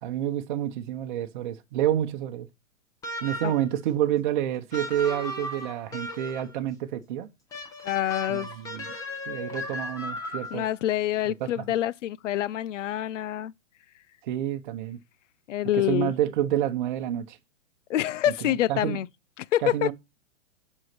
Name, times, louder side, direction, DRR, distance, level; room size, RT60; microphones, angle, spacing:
voice 1, 0.0-2.5 3.2-7.3 8.3-8.8 9.3-10.7 11.6-11.7 14.2-15.0 15.9-17.4 18.4-19.0 19.6-19.9, right 11 dB, 40° right, 0.9 m, -28 dB
sound 1, 3.0-3.7 4.7-6.6 7.5-10.7, left 1 dB, 10° left, 0.8 m, -36 dB
voice 2, 7.8-8.5 10.5-13.5 15.5-16.1 17.9-19.1 19.4-19.9, left 12 dB, 65° left, 0.6 m, -26 dB
8.0 x 5.6 x 6.0 m
hypercardioid pair, 165°, 39 cm